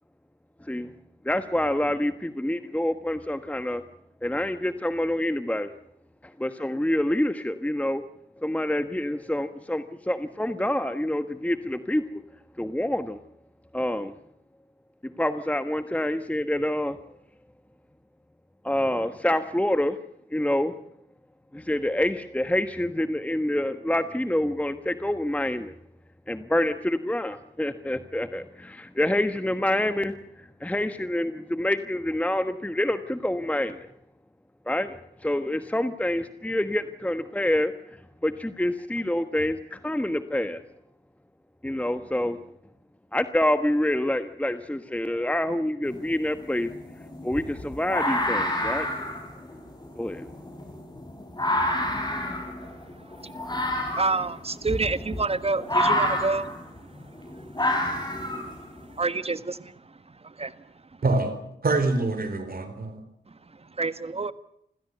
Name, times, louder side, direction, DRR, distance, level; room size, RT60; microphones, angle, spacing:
voice 1, 0.6-0.9 1.2-3.8 4.2-5.7 6.2-8.0 8.4-12.2 12.6-13.2 13.7-14.1 15.0-17.0 18.6-20.0 20.3-20.7 21.5-25.7 26.3-33.9 34.7-40.6 41.6-42.4 43.1-46.7 47.2-48.9 50.0-50.3, left 1 dB, 5° left, 1.2 m, -27 dB
sound 1, 45.8-46.0 46.4-58.9, left 1 dB, 25° left, 6.6 m, -29 dB
voice 2, 51.9-52.3 52.9-56.9 57.6-57.7 58.4-58.6 58.9-60.6 63.3-63.4 63.7-64.3, right 3 dB, 35° right, 1.5 m, -30 dB
voice 3, 61.0-61.3 61.6-63.0, right 3 dB, 55° right, 4.1 m, -25 dB
27.5 x 15.5 x 8.0 m
cardioid pair, 60°, 19 cm